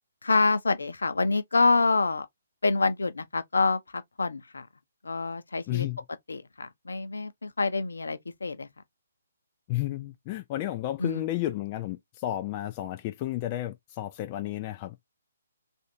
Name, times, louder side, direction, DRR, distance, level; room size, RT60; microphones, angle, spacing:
voice 1, 0.2-2.3 2.6-4.7 5.0-5.9 6.3-8.7 11.0-11.3, left 3 dB, 75° left, 0.7 m, -26 dB
voice 2, 5.7-6.0 9.7-15.0, left 14 dB, 30° left, 0.4 m, -32 dB
3.2 x 2.6 x 2.7 m
figure-of-eight pair, 135°, 0 cm